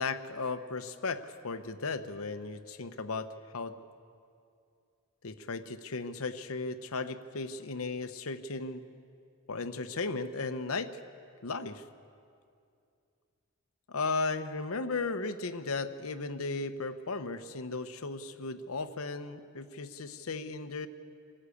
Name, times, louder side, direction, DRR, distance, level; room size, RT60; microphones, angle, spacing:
voice 1, 0.0-3.8 5.2-8.8 9.5-11.0 11.4-11.8 13.9-20.9, left 3 dB, 70° left, 10 dB, 0.9 m, -36 dB
24.5 x 13.0 x 8.4 m, 2.4 s
head